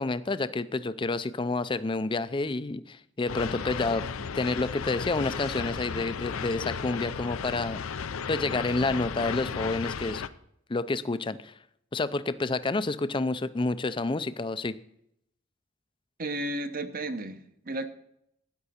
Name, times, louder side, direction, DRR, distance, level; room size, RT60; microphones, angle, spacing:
voice 1, 0.0-4.1 4.3-7.8 8.3-10.2 10.7-11.6 11.9-14.7, left 3 dB, 25° left, 14 dB, 0.4 m, -29 dB
sound 1, 3.3-10.3, left 6 dB, 85° left, 0.6 m, -34 dB
voice 2, 16.2-17.9, right 1 dB, 45° right, 10 dB, 0.9 m, -33 dB
13.0 x 9.4 x 4.2 m, 0.75 s
head